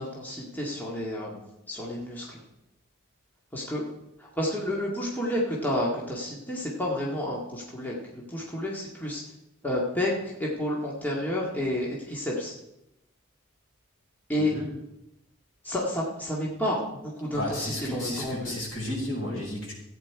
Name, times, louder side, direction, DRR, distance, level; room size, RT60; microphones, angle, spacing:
voice 1, 0.0-1.4 1.7-2.4 3.5-3.8 4.2-9.2 9.6-12.5 14.3-14.5 15.6-18.5 19.2-19.4, left 1 dB, 10° left, -4 dB, 1.9 m, -30 dB
voice 2, 17.3-19.7, left 1 dB, 65° left, -3 dB, 5.1 m, -33 dB
14.5 x 9.2 x 4.8 m, 0.86 s
head